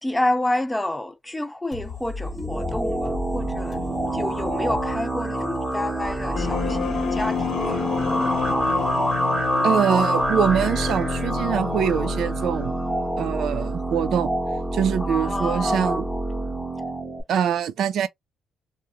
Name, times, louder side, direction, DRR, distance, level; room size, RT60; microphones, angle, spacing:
voice 1, 0.0-3.9 4.1-7.9 15.0-16.1, left 1 dB, 10° left, 0.3 m, -29 dB
sound 1, 1.7-7.4, left 4 dB, 45° left, 0.9 m, -39 dB
sound 2, 2.2-17.2, right 1 dB, 10° right, 0.7 m, -26 dB
sound 3, 6.3-13.4, left 9 dB, 75° left, 0.6 m, -31 dB
voice 2, 9.6-12.7 13.2-14.3 14.7-16.1 17.3-18.1, right 8 dB, 70° right, 0.3 m, -24 dB
2.3 x 2.0 x 2.9 m
cardioid pair, 90°, 0 cm